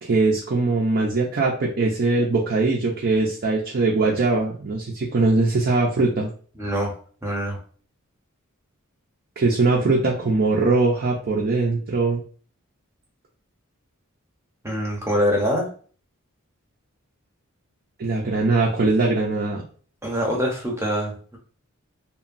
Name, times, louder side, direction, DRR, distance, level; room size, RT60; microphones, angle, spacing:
voice 1, 0.0-6.3 9.4-12.2 18.0-19.6, right 3 dB, 45° right, -2 dB, 0.5 m, -21 dB
voice 2, 6.6-6.9 7.2-7.6 14.6-15.7 20.0-21.4, equal, 10° right, 0 dB, 0.7 m, -24 dB
2.9 x 2.2 x 2.5 m, 0.43 s
head